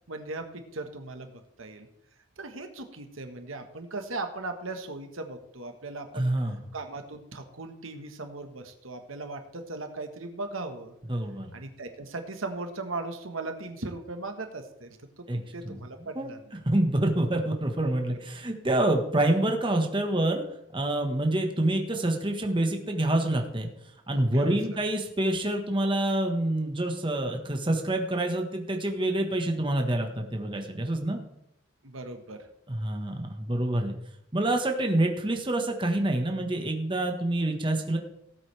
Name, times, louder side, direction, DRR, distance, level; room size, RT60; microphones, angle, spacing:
voice 1, 0.1-0.4 0.7-1.3 1.6-1.9 2.4-6.3 6.7-10.9 11.5-16.6 18.1-18.2 24.3-24.5 31.8-32.5, right 3 dB, 80° right, 6 dB, 1.5 m, -38 dB
voice 2, 6.1-6.6 11.1-11.5 15.3-15.7 16.1-16.3 16.6-20.4 20.7-23.7 24.1-31.2 32.7-33.9 34.3-38.0, right 1 dB, 25° right, 3 dB, 1.4 m, -27 dB
18.0 x 8.2 x 3.4 m, 0.80 s
head